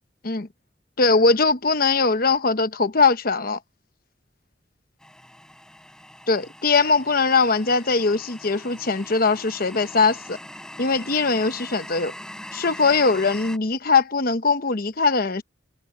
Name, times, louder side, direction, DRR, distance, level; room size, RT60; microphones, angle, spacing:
voice 1, 1.0-3.6 6.3-10.4 10.8-12.1 12.5-15.4, left 4 dB, 50° left, 1.0 m, -21 dB
sound 1, 5.0-13.6, left 1 dB, 5° left, 7.7 m, -41 dB
head